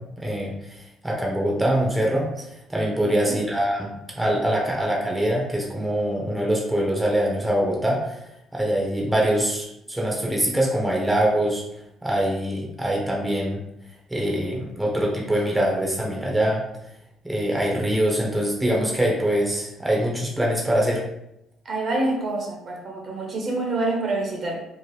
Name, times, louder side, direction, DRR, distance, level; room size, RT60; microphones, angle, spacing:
voice 1, 0.0-8.2 8.5-11.6 12.0-13.6 14.1-16.6 17.2-21.0, right 1 dB, 10° right, -2 dB, 0.6 m, -24 dB
voice 2, 3.1-3.4 21.6-24.7, right 2 dB, 45° right, 0 dB, 0.7 m, -27 dB
2.8 x 2.0 x 3.2 m, 0.83 s
cardioid pair, 95°, 0 cm